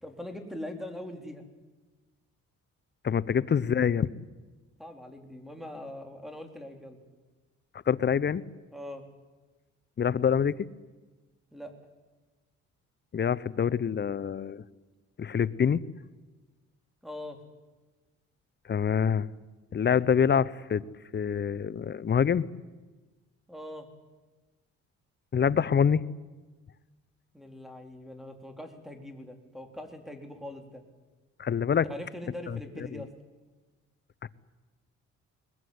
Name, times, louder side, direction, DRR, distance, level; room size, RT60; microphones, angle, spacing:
voice 1, 0.0-1.4 4.8-7.0 8.7-9.0 11.5-11.7 17.0-17.4 23.5-23.9 27.3-30.8 31.7-33.1, left 1 dB, ahead, 5 dB, 4.1 m, -42 dB
voice 2, 3.0-4.1 7.9-8.4 10.0-10.7 13.1-14.6 15.2-15.8 18.7-19.3 19.7-20.8 21.1-22.5 25.3-26.0 31.4-31.9 32.5-32.6 32.9-33.0 34.2-34.3, left 7 dB, 35° left, 19 dB, 0.9 m, -25 dB
21.5 x 21.0 x 9.6 m, 1.3 s
cardioid pair, 90°, 30 cm